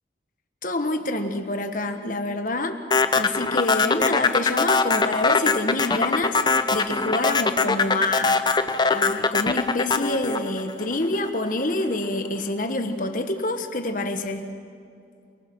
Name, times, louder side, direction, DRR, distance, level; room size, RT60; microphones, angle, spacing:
voice 1, 0.6-2.8 3.1-14.5, left 2 dB, 45° left, 7 dB, 1.5 m, -27 dB
sound 1, 2.9-11.3, left 4 dB, 25° left, 0.8 m, -21 dB
29.0 x 19.5 x 6.3 m, 2.3 s
head